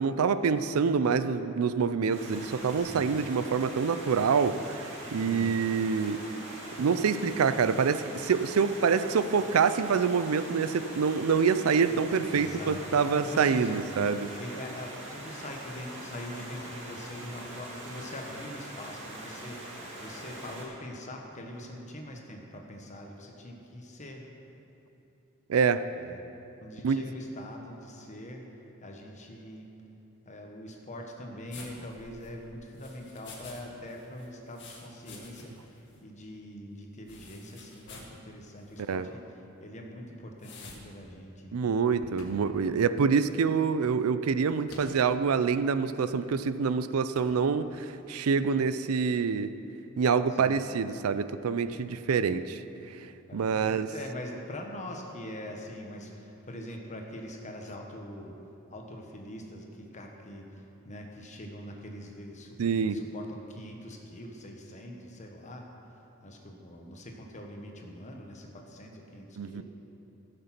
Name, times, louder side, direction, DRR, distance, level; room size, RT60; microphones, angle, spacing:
voice 1, 0.0-4.9 5.1-6.2 6.8-14.3 25.5-25.8 26.8-27.0 38.9-39.1 41.5-49.5 50.0-52.6 53.3-53.9 62.6-63.0 69.4-69.6, right 5 dB, 85° right, 13 dB, 0.4 m, -26 dB
Stream, 2.1-20.6, right 1 dB, 60° right, 2.3 m, -43 dB
voice 2, 2.8-3.1 5.2-5.5 11.9-12.0 12.3-13.8 14.4-24.3 26.0-26.2 26.6-28.5 28.8-29.7 30.2-39.2 39.6-41.6 50.3-50.6 52.2-52.5 53.3-58.4 58.7-65.7 66.2-69.6, left 1 dB, 35° left, 2 dB, 1.3 m, -43 dB
sound 1, 31.5-33.6 33.9-35.7 35.9-36.0 37.1-38.2 38.7-38.9 40.4-40.8, left 4 dB, 55° left, 1.9 m, -49 dB
sound 2, 42.2-42.6 44.7-45.1 46.4-46.6 47.1-47.5, left 1 dB, 75° left, 1.7 m, -48 dB
15.0 x 6.7 x 5.9 m, 2.9 s
head